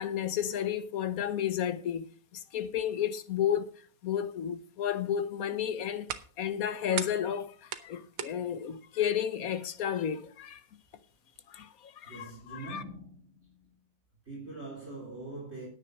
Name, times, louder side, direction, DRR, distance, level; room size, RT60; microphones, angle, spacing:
voice 1, 0.0-2.1 2.3-3.7 4.0-6.1 6.4-10.6 11.5-12.8, left 9 dB, 55° left, 1.1 m, -32 dB
sound 1, 5.5-11.4, right 10 dB, 80° right, 1.7 m, -44 dB
voice 2, 12.1-13.8 14.3-15.7, right 2 dB, 30° right, 3.7 m, -43 dB
9.8 x 8.6 x 6.1 m
omnidirectional pair, 2.3 m